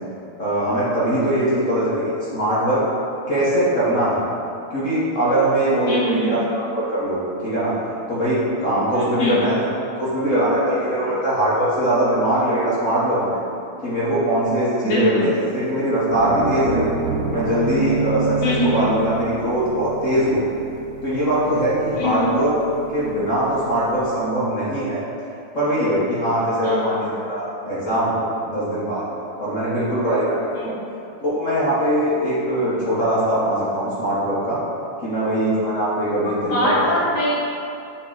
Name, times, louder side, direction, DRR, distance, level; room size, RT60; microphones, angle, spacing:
voice 1, 0.4-2.8 3.3-4.2 4.7-7.7 8.1-9.6 10.0-13.4 13.8-16.9 17.3-20.4 21.0-25.0 25.5-29.0 29.4-30.5 31.2-34.6 35.0-37.0, right 1 dB, 40° left, -10 dB, 1.4 m, -21 dB
voice 2, 5.9-6.3 8.9-9.4 14.8-15.2 18.4-18.9 21.9-22.3 26.6-26.8 30.5-30.7 36.2-37.3, left 1 dB, 70° left, -9 dB, 2.6 m, -23 dB
sound 1, 16.1-24.0, right 3 dB, 75° right, 0.8 m, -30 dB
8.5 x 3.7 x 3.9 m, 2.7 s
omnidirectional pair, 2.4 m